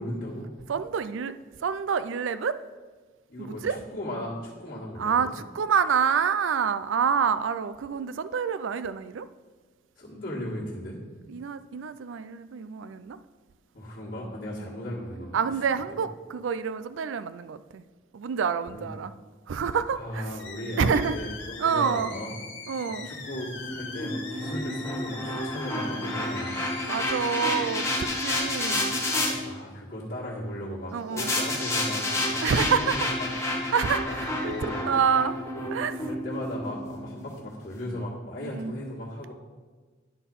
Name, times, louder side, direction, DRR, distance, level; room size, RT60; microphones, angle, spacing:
voice 1, 0.0-0.5 3.3-5.3 10.0-11.0 13.7-15.4 18.7-18.9 20.0-22.3 23.0-26.6 29.3-33.3 34.1-34.9 36.0-39.3, left 1 dB, 45° left, -7 dB, 1.8 m, -36 dB
voice 2, 0.7-1.3 1.6-2.6 3.4-3.8 5.0-9.3 11.3-13.2 14.5-14.8 15.3-17.8 18.1-19.1 19.5-20.4 20.8-21.2 21.6-22.1 22.7-23.1 26.9-29.0 30.9-31.3 32.4-33.1 33.7-35.4 35.7-36.1 38.4-38.7, right 6 dB, 80° right, 13 dB, 0.4 m, -27 dB
sound 1, 20.4-29.0 33.7-35.0, left 4 dB, 70° left, 1.5 m, -42 dB
sound 2, 23.1-29.3 31.2-37.4, left 1 dB, 15° left, 1.1 m, -30 dB
10.0 x 4.3 x 5.4 m, 1.4 s
head